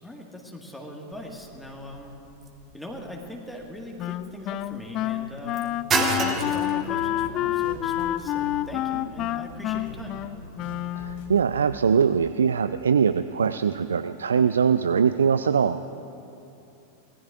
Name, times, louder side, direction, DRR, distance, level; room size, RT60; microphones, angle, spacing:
voice 1, 0.0-2.2 2.7-5.6 6.0-10.2, equal, ahead, -1 dB, 1.8 m, -40 dB
sound 1, 1.1-11.2, right 4 dB, 25° right, 1.5 m, -34 dB
Wind instrument woodwind instrument, 4.0-11.4, left 13 dB, 35° left, 0.4 m, -28 dB
sound 2, 6.1-12.1, right 1 dB, 50° left, 2.5 m, -43 dB
voice 2, 11.0-15.8, right 6 dB, 70° right, 13 dB, 0.3 m, -22 dB
25.5 x 18.5 x 2.5 m, 2.8 s
figure-of-eight pair, 90°, 0 cm